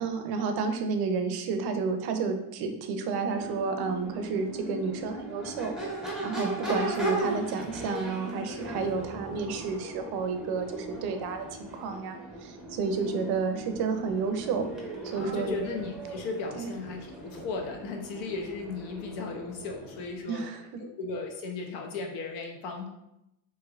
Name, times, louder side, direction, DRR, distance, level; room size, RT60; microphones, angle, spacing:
voice 1, 0.0-14.7 15.0-15.5 16.6-16.7 20.3-20.8, right 5 dB, 60° right, 6 dB, 0.5 m, -31 dB
Crowd / Race car auto racing / Accelerating revving vroom, 3.2-20.2, right 1 dB, ahead, 0.5 m, -38 dB
voice 2, 15.1-20.4 20.8-22.9, left 4 dB, 90° left, 2 dB, 0.8 m, -36 dB
3.2 x 3.0 x 2.3 m, 0.86 s
cardioid pair, 140°, 45 cm